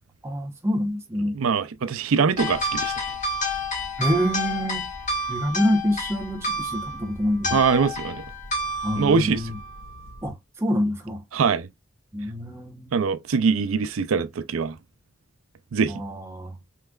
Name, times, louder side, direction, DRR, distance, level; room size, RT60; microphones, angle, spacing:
voice 1, 0.2-1.4 4.0-4.9 5.3-7.6 8.8-9.6 10.2-11.2 12.1-12.9 15.9-16.6, equal, 15° right, 0.9 m, -26 dB
voice 2, 1.3-2.9 7.5-8.2 8.9-9.5 11.3-11.7 12.9-14.8 15.7-15.9, right 5 dB, 85° right, 0.5 m, -23 dB
sound 1, 2.4-10.3, left 1 dB, 35° left, 1.8 m, -30 dB
5.7 x 3.2 x 2.3 m
head